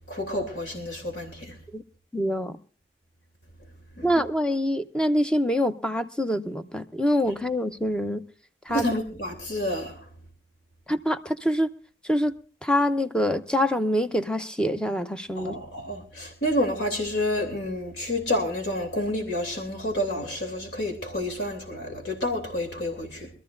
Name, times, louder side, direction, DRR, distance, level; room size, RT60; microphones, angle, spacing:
voice 1, 0.1-1.6 4.0-4.3 8.7-10.0 15.3-23.3, left 1 dB, 90° left, 3.0 m, -29 dB
voice 2, 2.1-2.6 4.0-8.2 8.7-8.9 10.9-11.7 12.1-12.3 12.6-15.6, equal, 5° left, 0.7 m, -25 dB
24.0 x 13.5 x 2.6 m
head